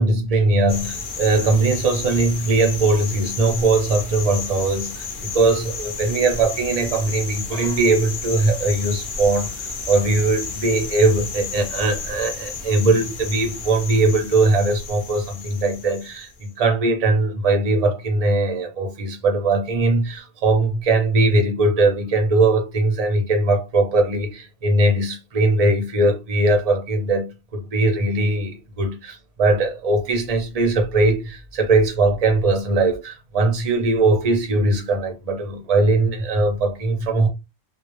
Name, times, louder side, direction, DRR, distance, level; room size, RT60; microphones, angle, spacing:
voice 1, 0.0-37.3, right 2 dB, 45° right, 0.5 m, -20 dB
sound 1, 0.7-16.4, left 5 dB, 60° left, 0.5 m, -32 dB
2.2 x 2.1 x 2.9 m
omnidirectional pair, 1.4 m